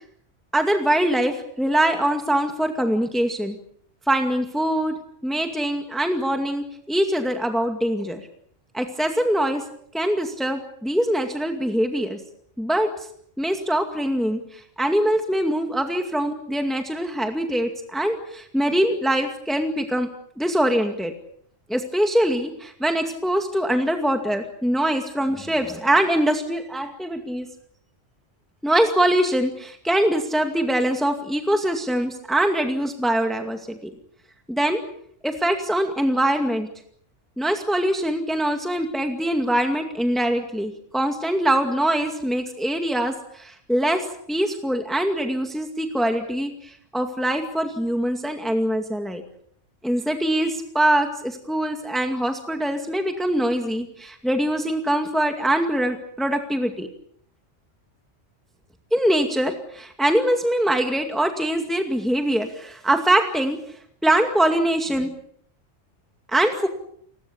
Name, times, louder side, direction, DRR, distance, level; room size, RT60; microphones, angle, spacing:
voice 1, 0.5-3.6 4.1-5.0 5.2-8.2 8.7-9.6 9.9-12.2 12.6-12.9 13.4-20.1 20.4-21.1 21.7-27.5 28.6-33.9 34.5-34.8 35.2-36.7 37.4-49.2 49.8-56.9 58.9-63.6 64.0-65.1 66.3-66.7, right 1 dB, ahead, 5 dB, 2.2 m, -23 dB
29.5 x 21.0 x 7.2 m, 0.65 s
omnidirectional pair, 1.2 m